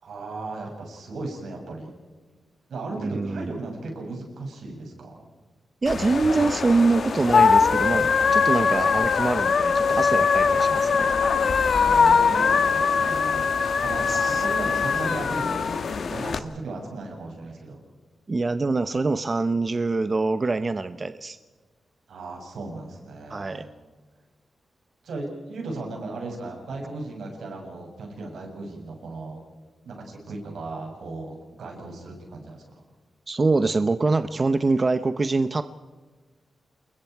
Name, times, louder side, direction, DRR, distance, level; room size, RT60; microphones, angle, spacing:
voice 1, 0.0-1.9 2.7-5.3 11.8-17.8 22.1-23.7 25.0-29.4 29.8-32.6, right 3 dB, 85° right, 1 dB, 7.0 m, -36 dB
voice 2, 3.0-3.5 5.8-11.1 14.1-14.5 18.3-21.4 23.3-23.7 33.3-35.6, right 3 dB, 35° right, 11 dB, 0.8 m, -24 dB
sound 1, 5.9-16.4, left 5 dB, 65° left, 1.3 m, -21 dB
28.5 x 22.0 x 4.7 m, 1.4 s
wide cardioid pair, 100°, 0 cm